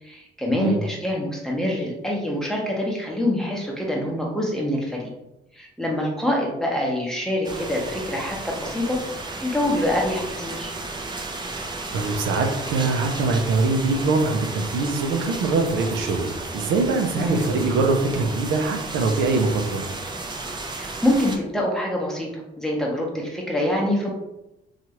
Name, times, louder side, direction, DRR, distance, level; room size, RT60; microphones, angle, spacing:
voice 1, 0.0-5.1 5.5-9.0 9.4-10.8 17.2-17.4 20.8-24.1, left 1 dB, 5° left, -2 dB, 0.8 m, -25 dB
sound 1, 7.4-21.4, right 3 dB, 20° right, 0.5 m, -33 dB
voice 2, 11.9-19.8, right 3 dB, 80° right, 3 dB, 0.5 m, -23 dB
2.9 x 2.4 x 2.8 m, 0.91 s
cardioid pair, 90°, 20 cm